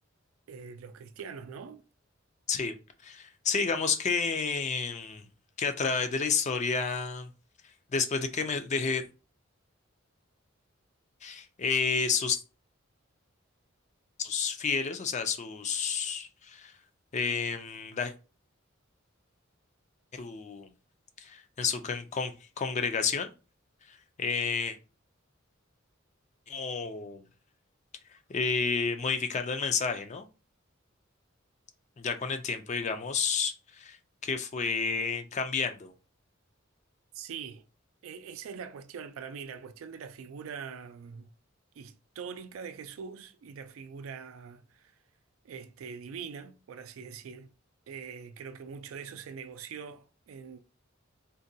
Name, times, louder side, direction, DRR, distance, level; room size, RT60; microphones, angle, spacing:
voice 1, 0.5-1.8 37.1-37.6 38.0-41.3 41.8-44.9 45.4-47.5 47.9-50.6, right 6 dB, 85° right, 0.4 m, -43 dB
voice 2, 3.0-5.2 5.6-7.3 7.9-9.0 11.2-12.4 14.2-16.7 17.1-18.1 20.1-20.7 21.2-23.3 24.2-24.8 26.5-27.2 28.3-30.3 32.0-34.0 34.2-35.9, left 5 dB, 35° left, 0.4 m, -30 dB
3.8 x 2.2 x 2.7 m
head